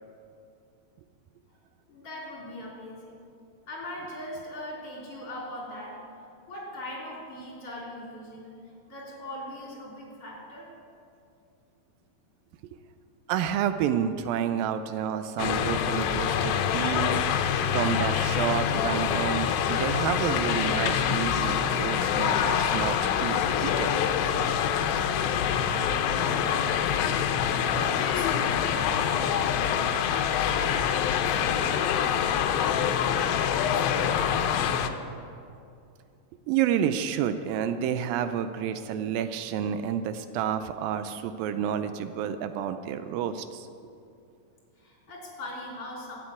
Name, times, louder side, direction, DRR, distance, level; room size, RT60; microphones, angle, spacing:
voice 1, 1.9-3.1 3.7-6.0 6.5-8.6 8.9-10.7 25.3-35.1 44.8-46.2, left 1 dB, 40° left, -4 dB, 4.6 m, -41 dB
voice 2, 13.3-17.2 17.7-24.0 36.5-43.7, right 9 dB, 85° right, 10 dB, 2.4 m, -29 dB
sound 1, 15.4-34.9, left 8 dB, 85° left, 2.5 m, -26 dB
13.0 x 9.6 x 8.5 m, 2.5 s
omnidirectional pair, 4.1 m